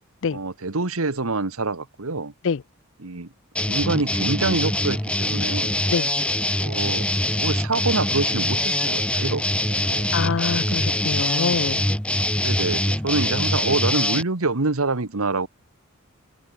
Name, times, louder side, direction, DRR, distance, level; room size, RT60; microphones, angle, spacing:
voice 1, 0.3-2.3 3.0-3.3 3.7-5.8 6.6-7.0 7.3-9.4 9.7-10.3 12.4-15.5, right 3 dB, 80° right, 1.4 m, -26 dB
sound 1, 3.6-14.2, left 1 dB, 5° left, 1.3 m, -23 dB
voice 2, 10.1-11.8, left 5 dB, 65° left, 0.5 m, -25 dB
head